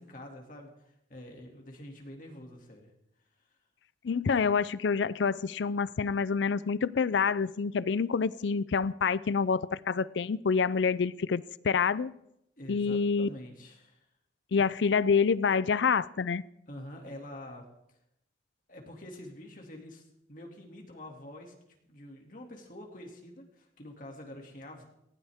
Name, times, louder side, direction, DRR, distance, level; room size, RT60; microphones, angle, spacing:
voice 1, 0.0-2.9 12.6-14.1 16.7-17.6 18.7-20.0 20.3-21.5 21.9-24.8, left 1 dB, 50° left, 1 dB, 2.5 m, -46 dB
voice 2, 4.0-12.1 12.7-13.3 14.5-16.4, left 5 dB, 85° left, 18 dB, 0.5 m, -27 dB
18.5 x 16.5 x 3.6 m, 0.80 s
head